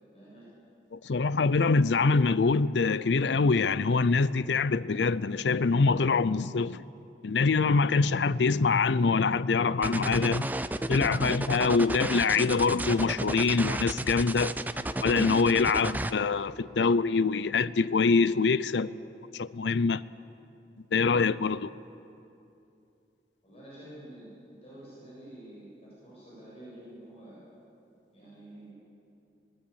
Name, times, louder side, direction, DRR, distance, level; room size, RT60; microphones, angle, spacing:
voice 1, 0.1-0.5 23.4-27.5 28.1-28.7, right 1 dB, 35° left, 7.4 m, -48 dB
voice 2, 0.9-6.8 7.2-10.5 10.9-14.5 15.0-18.9 19.3-20.0 20.9-21.7, left 4 dB, 90° left, 0.5 m, -24 dB
sound 1, 9.8-16.1, right 1 dB, 10° right, 0.5 m, -32 dB
21.5 x 19.0 x 8.6 m
head